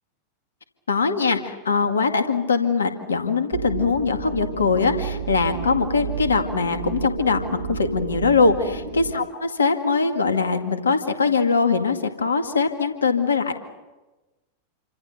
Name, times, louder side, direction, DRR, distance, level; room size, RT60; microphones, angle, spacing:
voice 1, 0.9-7.4 7.7-13.5, left 4 dB, 70° left, 7 dB, 2.1 m, -22 dB
sound 1, 3.5-9.1, right 5 dB, 75° right, 2.7 m, -31 dB
28.5 x 25.5 x 6.7 m, 1.1 s
figure-of-eight pair, 90°, 0 cm